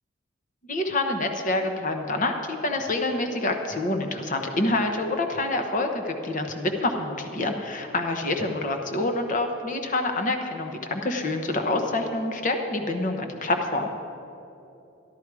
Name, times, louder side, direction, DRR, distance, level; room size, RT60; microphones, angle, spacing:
voice 1, 0.7-13.9, left 2 dB, 45° left, 5 dB, 0.9 m, -27 dB
12.5 x 12.0 x 4.8 m, 2.8 s
head